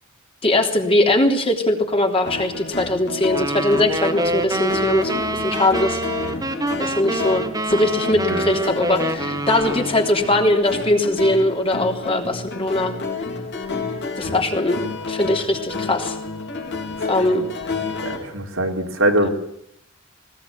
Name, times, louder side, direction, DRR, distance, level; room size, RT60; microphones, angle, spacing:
voice 1, 0.4-6.0 6.8-13.0 14.2-16.2 17.1-17.5 19.2-19.3, left 1 dB, 30° left, 3 dB, 3.5 m, -20 dB
sound 1, 2.3-18.2, left 4 dB, 60° left, 4.5 m, -30 dB
sound 2, 3.3-10.1, right 1 dB, 20° right, 1.6 m, -26 dB
voice 2, 18.0-19.3, right 1 dB, 80° right, 2 dB, 3.9 m, -22 dB
20.0 x 19.0 x 7.6 m, 0.73 s
head